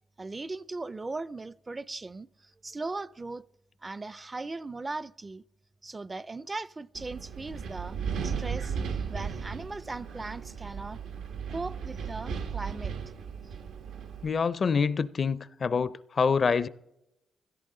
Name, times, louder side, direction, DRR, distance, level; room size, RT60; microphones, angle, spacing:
voice 1, 0.2-3.4 3.8-5.4 5.8-8.0 8.2-11.0 11.5-13.0, right 3 dB, 25° right, 0.4 m, -38 dB
Wind, 6.9-14.3, right 6 dB, 85° right, 1.1 m, -36 dB
voice 2, 14.2-16.7, left 5 dB, 50° left, 0.5 m, -26 dB
16.0 x 13.5 x 3.8 m
cardioid pair, 75°, 0 cm